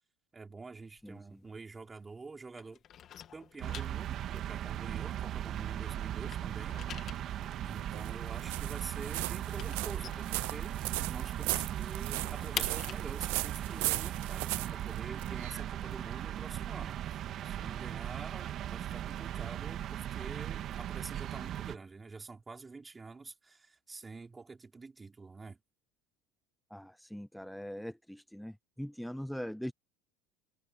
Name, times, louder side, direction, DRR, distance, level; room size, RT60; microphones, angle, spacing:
voice 1, 0.3-2.8 3.3-7.0 7.6-25.6, right 4 dB, 15° right, 5.2 m, -47 dB
sound 1, 0.8-2.3 2.5-5.8 6.0-11.1 11.4-11.5 11.8-15.5, left 10 dB, 40° left, 2.8 m, -46 dB
sound 2, 3.6-21.8, right 11 dB, 45° right, 2.2 m, -38 dB
sound 3, 7.4-15.6, right 22 dB, 75° right, 0.9 m, -38 dB
voice 2, 26.7-29.7, equal, ahead, 0.5 m, -41 dB
supercardioid pair, 115°, 0 cm